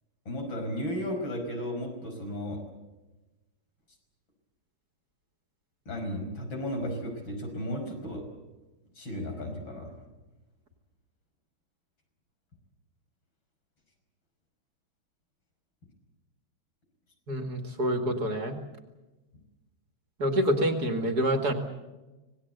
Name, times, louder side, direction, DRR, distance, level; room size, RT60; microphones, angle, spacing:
voice 1, 0.3-2.6 5.9-8.2 9.0-9.9, equal, 60° left, 3 dB, 6.2 m, -34 dB
voice 2, 17.3-18.6 20.2-21.5, equal, 45° right, 5 dB, 2.5 m, -27 dB
26.0 x 19.0 x 8.0 m, 1.1 s
omnidirectional pair, 2.4 m